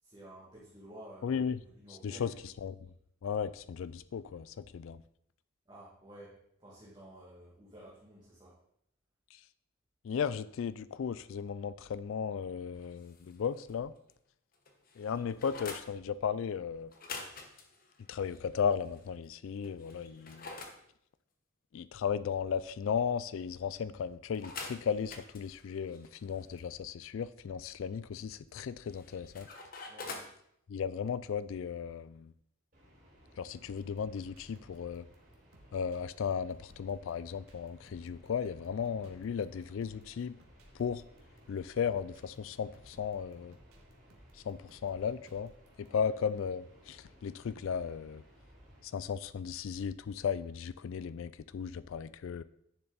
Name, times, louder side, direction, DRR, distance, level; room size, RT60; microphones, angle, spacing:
voice 1, 0.0-2.3 5.7-8.6 12.8-13.1 29.9-30.2 34.5-34.6 45.9-46.1, right 1 dB, 20° right, -7 dB, 1.8 m, -53 dB
voice 2, 1.2-1.6 2.0-2.3 2.6-2.8 3.2-5.0 10.0-13.9 15.0-16.9 18.1-20.5 21.7-29.5 30.7-32.3 33.4-35.1 35.7-40.4 40.8-41.0 41.5-43.6 44.5-45.5 45.8-48.2 48.8-52.4, left 7 dB, 65° left, 16 dB, 0.3 m, -35 dB
sound 1, 12.8-13.8 14.1-14.2 14.5-15.9 16.9-19.1 19.6-20.8 24.3-26.6 28.6-30.4, left 3 dB, 40° left, 1.1 m, -47 dB
sound 2, 32.7-48.8, equal, 40° right, 4.3 m, -60 dB
sound 3, 33.6-45.9, equal, 90° right, 1.6 m, -61 dB
10.0 x 6.9 x 4.0 m, 0.72 s
head